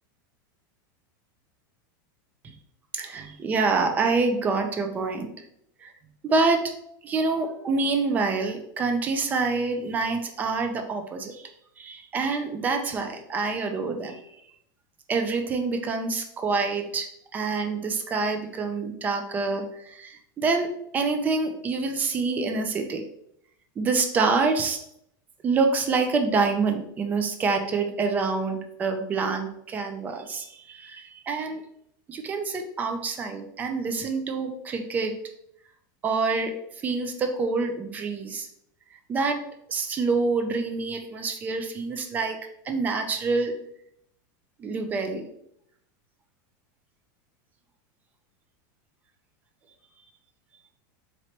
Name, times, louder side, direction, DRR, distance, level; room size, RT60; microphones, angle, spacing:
voice 1, 2.9-5.3 5.8-5.9 6.2-6.6 7.0-11.5 11.8-14.2 15.1-23.0 23.8-24.8 25.4-31.6 32.1-35.1 36.0-38.5 39.1-39.4 39.7-42.4 42.6-43.5 44.6-45.2, right 4 dB, 15° right, 5 dB, 0.4 m, -26 dB
4.3 x 3.0 x 2.9 m, 0.73 s
supercardioid pair, 165°, 11 cm